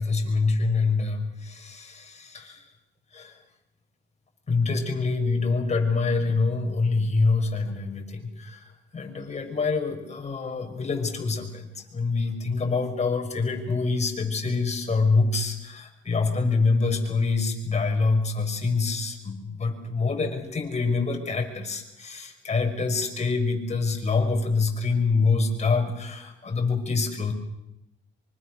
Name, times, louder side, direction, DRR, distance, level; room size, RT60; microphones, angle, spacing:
voice 1, 0.0-2.6 3.1-3.3 4.5-8.6 8.9-11.7 11.9-27.3, left 4 dB, 35° left, 3 dB, 5.7 m, -25 dB
25.0 x 24.5 x 6.5 m, 0.87 s
cardioid pair, 90°, 20 cm